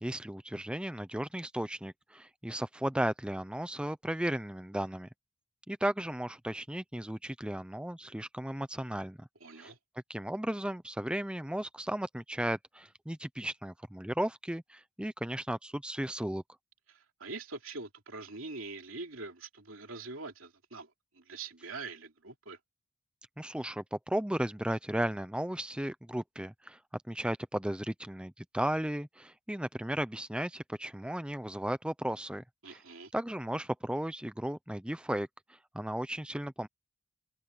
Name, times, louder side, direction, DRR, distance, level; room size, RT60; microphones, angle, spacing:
voice 1, 0.0-5.1 5.7-9.3 9.6-9.7 10.1-16.4 23.4-32.8 33.1-35.3 35.7-36.7, right 1 dB, 5° right, 0.7 m, -35 dB
voice 2, 9.4-9.8 16.9-22.6 32.6-33.1, right 3 dB, 75° right, 3.2 m, -44 dB
open air
head